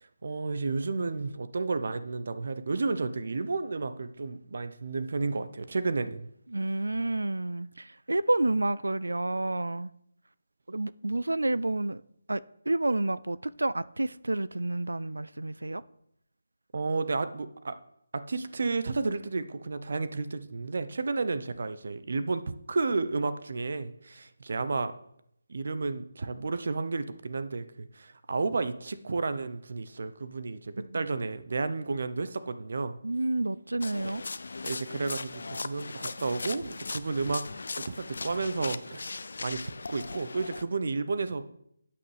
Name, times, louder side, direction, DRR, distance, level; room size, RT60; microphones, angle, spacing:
voice 1, 0.0-6.3 16.7-17.8 18.1-25.0 25.5-33.0 34.6-37.5 37.8-41.4, right 3 dB, 60° right, 0.8 m, -32 dB
voice 2, 6.5-9.9 10.7-12.0 12.3-15.8 30.8-31.0 33.0-34.2, right 2 dB, 85° right, 0.4 m, -29 dB
sound 1, 33.8-40.6, left 3 dB, 65° left, 0.6 m, -38 dB
12.0 x 8.5 x 3.4 m
figure-of-eight pair, 160°, 0 cm